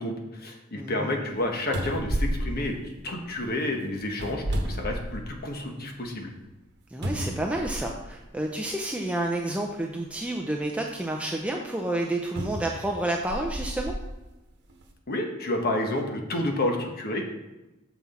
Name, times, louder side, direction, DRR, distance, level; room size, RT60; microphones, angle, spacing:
voice 1, 0.0-6.3 15.1-17.2, left 1 dB, 50° left, 3 dB, 1.1 m, -30 dB
voice 2, 0.8-1.1 6.9-14.0, right 1 dB, 5° right, 0 dB, 0.5 m, -30 dB
sound 1, 1.3-1.4 1.7-3.4 4.1-5.5 6.0-6.1 7.0-8.1 9.1-9.2 12.3-14.0 14.7-14.8, equal, 55° right, 1.1 m, -31 dB
7.1 x 5.9 x 4.2 m, 1.0 s
head